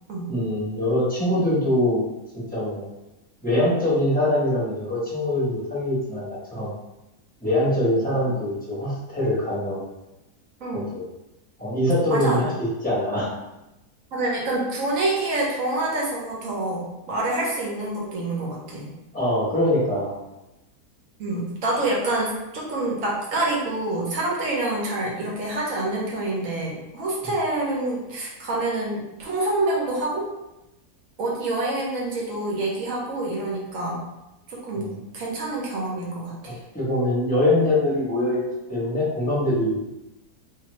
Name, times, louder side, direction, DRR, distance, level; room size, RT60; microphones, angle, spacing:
voice 1, 0.3-2.0 2.5-2.9 3.4-6.7 7.4-9.8 10.7-11.0 11.6-13.3 19.1-20.1 34.7-35.0 36.5-38.4 38.7-39.8, left 1 dB, 10° left, -8 dB, 0.6 m, -23 dB
voice 2, 12.1-12.4 14.1-18.9 21.2-30.3 31.2-34.0 34.5-36.6, right 2 dB, 60° right, -3 dB, 1.0 m, -27 dB
2.6 x 2.6 x 3.0 m, 0.94 s
omnidirectional pair, 1.7 m